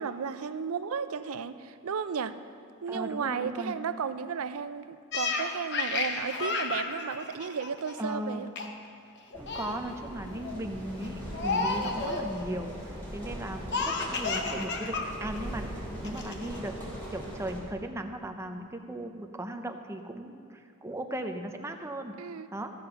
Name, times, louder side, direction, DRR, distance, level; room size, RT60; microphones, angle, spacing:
voice 1, 0.0-2.4 2.8-8.5 22.2-22.5, right 6 dB, 90° right, 12 dB, 0.5 m, -34 dB
voice 2, 2.9-3.8 8.0-8.4 9.3-15.7 16.0-16.7 17.1-22.2 22.5-22.7, right 1 dB, 15° right, 5 dB, 0.6 m, -37 dB
Laughter, 5.1-8.2 8.6-8.9 9.2-9.8 10.3-10.6 11.3-12.3 13.7-15.1 15.4-15.5 16.0-16.6, left 3 dB, 55° left, 1.0 m, -32 dB
sound 1, 9.3-17.6, equal, 10° left, 2.8 m, -40 dB
14.5 x 6.9 x 5.8 m, 2.3 s
head